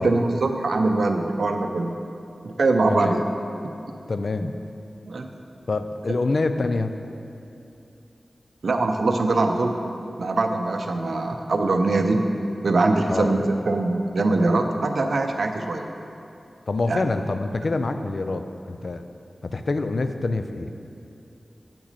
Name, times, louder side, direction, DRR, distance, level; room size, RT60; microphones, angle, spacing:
voice 1, 0.0-2.0 2.4-3.2 5.1-5.3 8.6-9.8 10.2-12.3 12.6-15.9 16.9-17.1, right 2 dB, 80° right, 5 dB, 0.5 m, -22 dB
voice 2, 2.9-3.2 4.1-4.5 5.7-6.9 13.1-13.3 16.7-19.0 19.4-20.7, left 3 dB, 65° left, 8 dB, 0.4 m, -26 dB
8.6 x 6.0 x 4.1 m, 2.7 s
wide cardioid pair, 65°, 0 cm